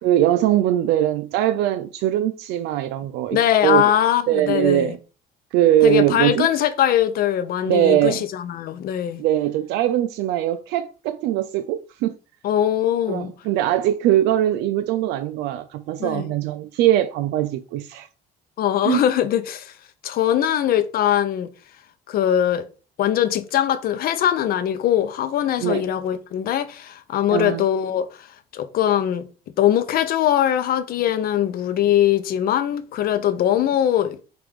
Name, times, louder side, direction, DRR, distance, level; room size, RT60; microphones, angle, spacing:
voice 1, 0.0-3.9 4.3-5.0 5.5-6.5 7.6-8.2 9.2-12.2 13.1-18.1 18.8-19.0 25.6-25.9 27.3-27.6, right 12 dB, 85° right, 0.4 m, -21 dB
voice 2, 3.3-4.9 5.8-9.2 12.4-13.3 16.0-16.3 18.6-19.7 20.0-21.5 22.1-22.7 23.0-28.3 28.5-29.3 29.6-34.2, left 10 dB, 65° left, 0.7 m, -21 dB
5.8 x 2.5 x 3.5 m
cardioid pair, 110°, 17 cm